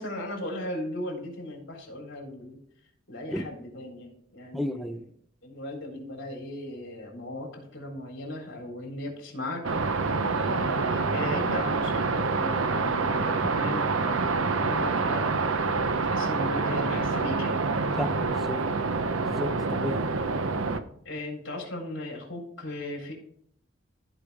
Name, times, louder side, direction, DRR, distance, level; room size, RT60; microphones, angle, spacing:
voice 1, 0.0-2.6 3.1-5.0 5.4-17.6 21.0-23.1, left 1 dB, 65° left, 0 dB, 3.8 m, -37 dB
voice 2, 4.5-5.0 18.0-18.6 19.2-20.0, left 1 dB, ahead, 9 dB, 0.5 m, -32 dB
sound 1, 9.6-20.8, right 4 dB, 85° right, 0.8 m, -27 dB
15.5 x 5.2 x 3.5 m, 0.65 s
head